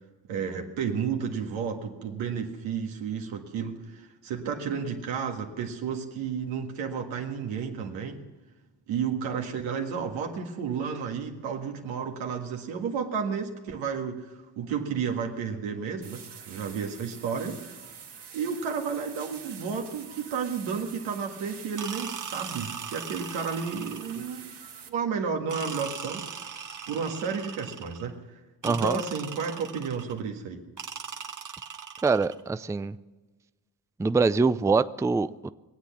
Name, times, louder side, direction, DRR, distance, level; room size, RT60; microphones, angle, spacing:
voice 1, 0.3-8.2 8.9-17.6 18.3-24.6 24.9-26.2 26.9-28.2 28.6-30.7, right 6 dB, 85° right, 2 dB, 1.8 m, -32 dB
sound 1, 16.0-24.9, right 7 dB, 60° right, 1.8 m, -46 dB
sound 2, 21.8-24.3 25.5-28.1 28.6-30.2 30.8-32.4, right 6 dB, 40° right, 1.2 m, -39 dB
voice 2, 28.6-29.0 32.0-33.0 34.0-35.5, right 4 dB, 5° right, 13 dB, 0.4 m, -24 dB
22.0 x 8.3 x 7.2 m, 1.3 s
supercardioid pair, 55°, 45 cm